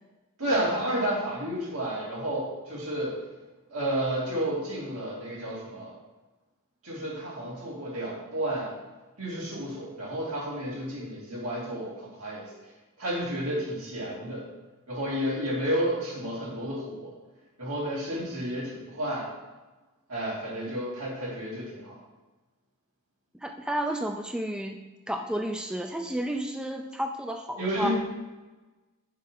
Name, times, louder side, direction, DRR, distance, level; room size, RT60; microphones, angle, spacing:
voice 1, 0.4-3.2 3.7-5.9 6.8-8.7 9.2-12.5 13.0-14.4 14.9-17.1 17.6-19.3 20.1-22.0 27.6-27.9, right 1 dB, 70° right, -5 dB, 2.7 m, -31 dB
voice 2, 23.4-24.8 25.1-27.9, right 1 dB, 5° right, 3 dB, 0.3 m, -31 dB
6.5 x 5.1 x 5.2 m, 1.2 s
head